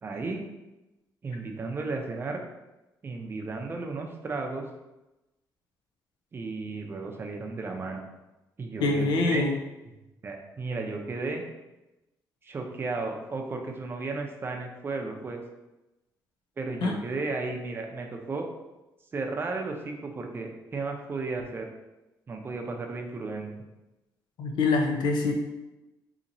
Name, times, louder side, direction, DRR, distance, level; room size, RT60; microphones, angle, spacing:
voice 1, 0.0-0.4 1.2-2.4 3.0-4.6 6.3-8.0 8.6-9.5 10.2-11.4 12.4-15.4 16.6-18.5 19.1-21.7 22.3-23.5, right 3 dB, 30° right, 2 dB, 0.6 m, -34 dB
voice 2, 8.8-9.5 16.8-17.0 24.4-25.3, left 3 dB, 80° left, 2 dB, 0.6 m, -24 dB
4.1 x 2.8 x 2.6 m, 1.0 s
cardioid pair, 115°, 7 cm